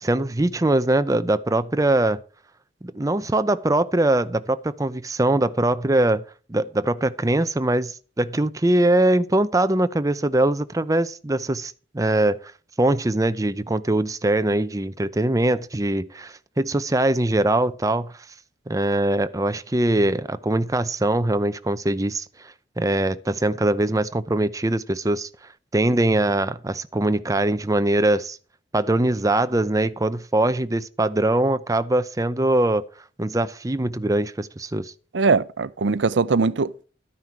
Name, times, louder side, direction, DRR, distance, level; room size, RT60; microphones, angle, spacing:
voice 1, 0.0-2.2 2.8-6.2 6.5-12.5 12.8-18.1 18.7-25.3 25.7-28.4 28.7-32.8 33.2-34.9, right 1 dB, 20° right, 0.6 m, -22 dB
voice 2, 35.1-36.8, right 4 dB, 80° right, 0.6 m, -21 dB
12.5 x 9.9 x 4.6 m
head